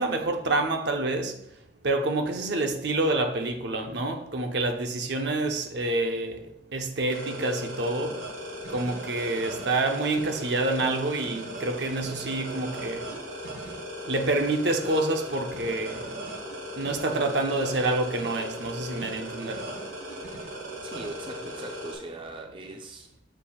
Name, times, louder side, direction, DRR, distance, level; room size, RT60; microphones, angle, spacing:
voice 1, 0.0-1.4 1.8-8.2 8.7-13.1 14.1-16.2 16.8-19.8, right 2 dB, 70° right, 0.7 m, -27 dB
sound 1, 7.1-21.9, equal, 85° right, 1.4 m, -38 dB
voice 2, 20.8-23.2, right 2 dB, 25° right, 0.4 m, -40 dB
6.8 x 2.5 x 5.5 m
head